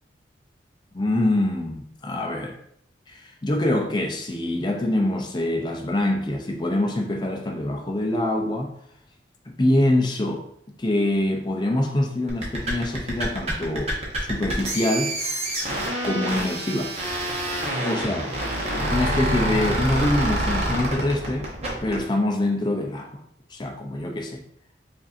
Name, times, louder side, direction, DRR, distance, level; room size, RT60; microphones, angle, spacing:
voice 1, 0.9-2.6 3.1-8.7 9.5-15.2 16.0-16.9 17.8-18.3 18.9-21.5 21.8-23.2 23.5-24.4, left 1 dB, 25° left, 0.5 m, -25 dB
sound 1, 12.3-22.0, right 1 dB, 35° right, 1.0 m, -27 dB
5.2 x 2.5 x 2.6 m
head